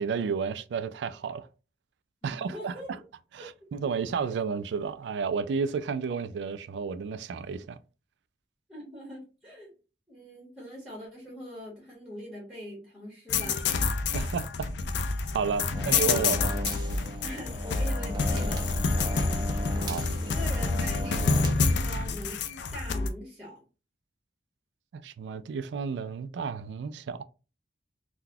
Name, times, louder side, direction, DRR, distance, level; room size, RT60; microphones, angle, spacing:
voice 1, 0.0-1.5 2.2-2.7 3.3-7.8 14.1-14.7 15.3-16.5 19.9-20.0 24.9-27.2, right 6 dB, 80° right, 0.3 m, -32 dB
voice 2, 2.2-3.0 3.4-3.5 8.7-9.7 10.1-13.6 15.7-15.8 17.2-22.4 22.7-23.6, equal, 5° right, 1.3 m, -43 dB
sound 1, 13.3-23.1, left 4 dB, 80° left, 0.4 m, -28 dB
sound 2, 15.7-21.5, equal, 25° right, 0.5 m, -38 dB
3.9 x 2.2 x 2.7 m
head